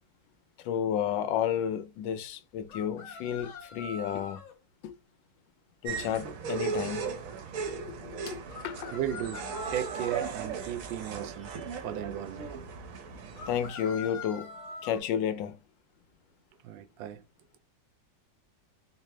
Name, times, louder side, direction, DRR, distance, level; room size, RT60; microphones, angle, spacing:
voice 1, 0.6-4.4 4.8-4.9 5.8-7.1 7.7-8.9 13.5-14.5 14.8-15.6, left 9 dB, 85° left, 1.3 m, -32 dB
sound 1, 2.7-4.5 8.5-10.3 13.4-15.0, left 3 dB, 65° left, 0.8 m, -43 dB
sound 2, 5.8-13.7, right 6 dB, 65° right, 0.9 m, -37 dB
voice 2, 8.9-9.5 9.7-11.5 11.8-12.5 16.6-17.2, right 10 dB, 90° right, 1.3 m, -35 dB
4.0 x 2.4 x 3.2 m
omnidirectional pair, 2.0 m